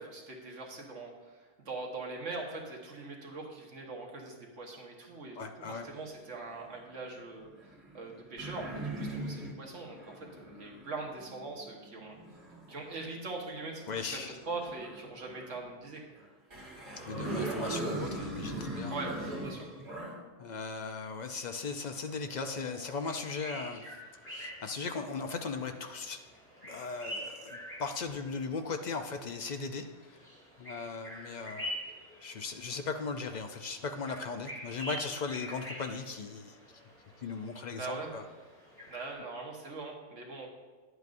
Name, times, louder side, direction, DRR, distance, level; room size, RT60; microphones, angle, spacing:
voice 1, 0.0-7.5 7.9-12.2 12.7-16.0 18.9-19.1 19.4-19.7 37.8-38.1 38.9-40.5, right 3 dB, 85° right, -1 dB, 1.6 m, -42 dB
voice 2, 5.4-5.9 13.9-14.4 17.1-19.0 20.4-23.8 24.3-26.2 26.6-30.2 30.6-31.7 32.2-36.6 37.2-38.2, left 4 dB, 55° left, 6 dB, 0.5 m, -38 dB
sound 1, 5.8-6.7 7.5-12.9 13.8-15.6 16.2-16.3 16.5-20.1, right 2 dB, 60° right, 2.3 m, -40 dB
sound 2, 21.3-39.1, equal, 10° left, 2.0 m, -47 dB
10.5 x 7.9 x 2.6 m, 1.3 s
omnidirectional pair, 1.2 m